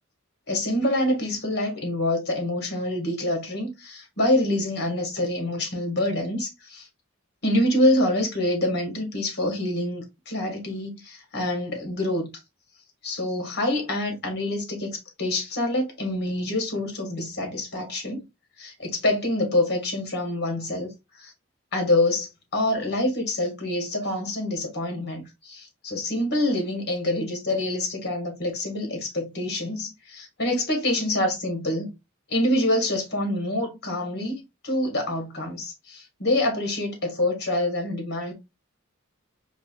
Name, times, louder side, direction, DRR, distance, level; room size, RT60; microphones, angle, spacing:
voice 1, 0.5-6.9 7.4-12.3 13.0-18.2 18.6-20.9 21.2-21.3 21.7-31.9 32.3-38.3, left 1 dB, 55° left, 1.5 m, -26 dB
4.6 x 2.6 x 2.3 m
head